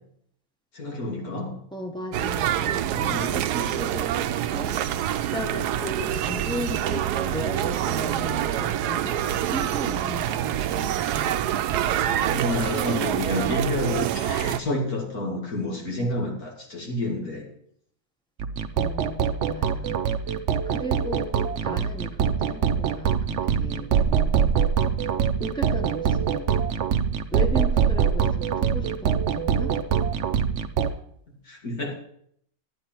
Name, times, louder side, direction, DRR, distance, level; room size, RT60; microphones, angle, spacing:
voice 1, 0.7-1.6 2.9-3.4 10.9-11.4 11.9-17.5 19.8-20.0 31.3-31.9, left 1 dB, 65° left, 0 dB, 2.6 m, -30 dB
voice 2, 1.7-4.8 5.3-10.6 10.8-11.3 18.8-20.0 20.6-24.6 25.4-26.5 27.3-29.8, equal, 5° left, 1 dB, 0.9 m, -36 dB
sound 1, 2.1-14.6, right 11 dB, 85° right, 1.1 m, -26 dB
sound 2, 18.4-31.0, right 7 dB, 60° right, 0.8 m, -24 dB
11.5 x 9.5 x 4.4 m, 0.67 s
omnidirectional pair, 1.6 m